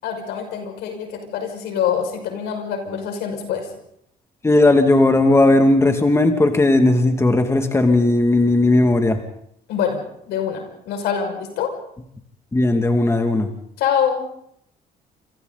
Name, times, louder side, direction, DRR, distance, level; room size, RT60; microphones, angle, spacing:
voice 1, 0.0-3.7 9.7-11.7 13.8-14.2, left 8 dB, 85° left, 4 dB, 6.0 m, -25 dB
voice 2, 4.4-9.2 12.5-13.5, left 2 dB, 15° left, 5 dB, 2.4 m, -16 dB
28.0 x 27.0 x 4.1 m, 0.72 s
cardioid pair, 110°, 17 cm